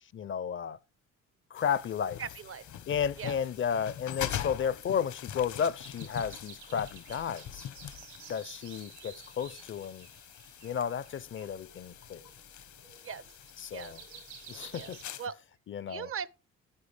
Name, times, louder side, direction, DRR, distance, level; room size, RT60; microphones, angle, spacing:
voice 1, 0.1-0.8 1.5-2.2 2.9-7.7 8.3-10.1 10.6-12.2 13.6-14.0 14.5-15.0 15.7-16.1, left 7 dB, 40° left, 0.5 m, -33 dB
sound 1, 1.6-15.3, left 10 dB, 75° left, 1.1 m, -44 dB
sound 2, 1.6-15.0, right 7 dB, 85° right, 4.7 m, -53 dB
voice 2, 2.2-2.6 3.2-3.4 13.0-13.2 13.7-13.9 14.7-15.4 15.9-16.3, right 7 dB, 45° right, 0.6 m, -39 dB
10.5 x 9.8 x 3.3 m
cardioid pair, 90°, 30 cm